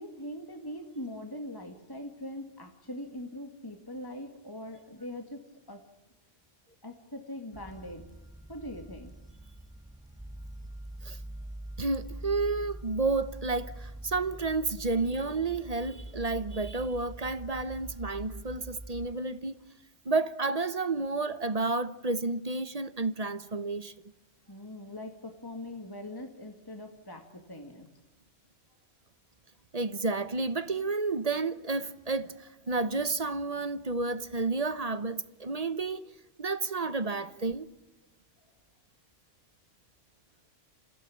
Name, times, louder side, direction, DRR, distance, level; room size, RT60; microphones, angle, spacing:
voice 1, 0.0-5.8 6.8-8.0 8.5-9.1 24.5-27.9, left 1 dB, 20° left, 2.0 m, -42 dB
sound 1, 7.5-19.1, right 1 dB, 5° right, 0.4 m, -44 dB
voice 2, 11.8-19.6 20.0-23.9 29.7-36.0 36.4-37.7, right 3 dB, 35° right, 0.9 m, -31 dB
27.5 x 16.0 x 8.7 m
omnidirectional pair, 1.3 m